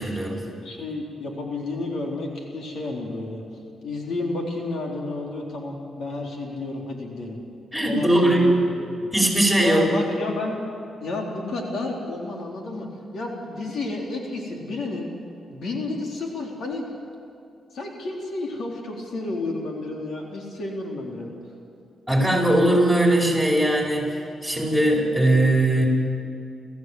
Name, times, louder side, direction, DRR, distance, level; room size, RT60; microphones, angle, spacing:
voice 1, 0.0-0.5 7.7-8.6 9.1-9.9 22.1-25.9, right 1 dB, ahead, -1 dB, 5.2 m, -20 dB
voice 2, 0.6-3.4 3.8-7.4 7.9-8.6 9.0-9.1 9.6-10.6 11.0-15.1 15.5-16.9 17.7-21.3, left 2 dB, 70° left, -1 dB, 3.7 m, -31 dB
30.0 x 14.5 x 7.9 m, 2.5 s
cardioid pair, 95°, 0 cm